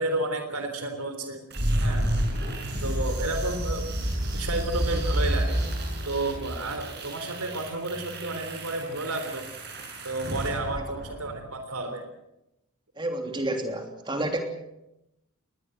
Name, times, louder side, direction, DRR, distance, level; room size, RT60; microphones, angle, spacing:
voice 1, 0.0-1.4 1.8-2.0 2.8-3.9 4.3-5.6 6.1-9.5 10.0-12.0, right 2 dB, 85° right, 6 dB, 3.6 m, -31 dB
sound 1, 1.5-11.5, right 1 dB, 50° right, 6.7 m, -30 dB
voice 2, 13.0-14.4, right 1 dB, 20° right, 4 dB, 3.3 m, -30 dB
21.5 x 19.0 x 8.0 m, 0.89 s
head